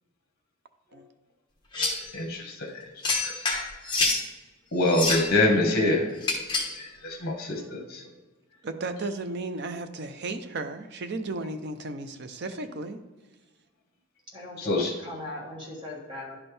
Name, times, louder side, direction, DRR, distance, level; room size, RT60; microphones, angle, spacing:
sound 1, 1.7-2.1 3.0-4.2 4.8-5.3 6.2-6.8, left 3 dB, 20° left, 1.3 m, -27 dB
voice 1, 1.8-3.3 4.7-6.1 6.8-8.0 14.6-14.9, left 2 dB, 45° left, 1 dB, 1.4 m, -26 dB
voice 2, 8.6-13.0, right 2 dB, 50° right, 9 dB, 0.5 m, -34 dB
voice 3, 14.3-16.4, left 2 dB, 20° right, -3 dB, 1.6 m, -39 dB
11.0 x 4.4 x 3.3 m, 1.2 s
head